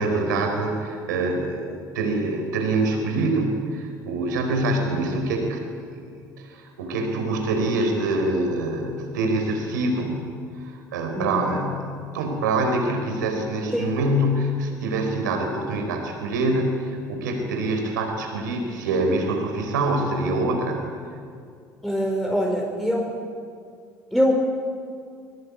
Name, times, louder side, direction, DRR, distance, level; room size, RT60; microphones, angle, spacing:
voice 1, 0.0-10.3 10.5-20.8, right 2 dB, 80° right, 4 dB, 4.6 m, -25 dB
voice 2, 11.2-11.5 13.7-13.9 21.8-23.2 24.1-24.3, equal, ahead, -1 dB, 4.5 m, -23 dB
23.5 x 21.5 x 8.6 m, 2.3 s
hypercardioid pair, 60°, 10 cm